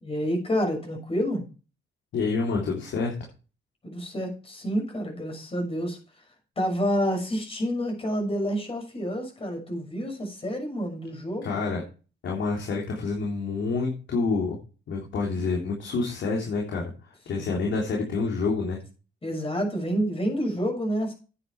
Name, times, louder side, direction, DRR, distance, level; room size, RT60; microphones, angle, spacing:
voice 1, 0.0-1.5 3.8-6.0 6.6-11.6 17.3-17.7 19.2-21.1, equal, 30° left, 3 dB, 6.3 m, -28 dB
voice 2, 2.1-3.1 11.4-11.8 12.2-14.6 14.9-18.8, left 4 dB, 70° left, -2 dB, 3.5 m, -28 dB
9.9 x 9.2 x 4.7 m, 0.34 s
cardioid pair, 90°, 20 cm